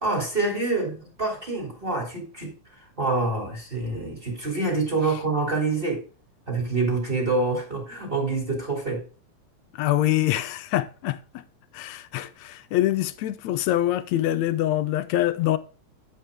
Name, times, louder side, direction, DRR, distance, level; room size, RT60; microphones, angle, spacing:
voice 1, 0.0-2.5 3.0-6.0 6.5-9.0, right 3 dB, 15° right, 3.0 m, -26 dB
voice 2, 9.8-11.4 11.7-15.6, left 13 dB, 75° left, 1.8 m, -25 dB
9.1 x 8.4 x 3.6 m
omnidirectional pair, 3.6 m